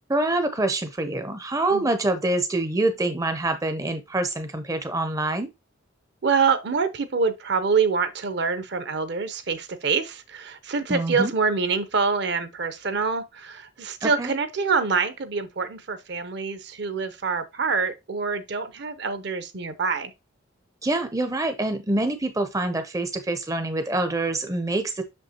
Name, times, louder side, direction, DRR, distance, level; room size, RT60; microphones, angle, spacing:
voice 1, 0.1-5.5 10.9-11.3 14.0-14.3 20.8-25.0, right 2 dB, 15° right, 0.5 m, -26 dB
voice 2, 6.2-20.1, right 5 dB, 55° right, 0.7 m, -25 dB
6.3 x 5.3 x 2.8 m
head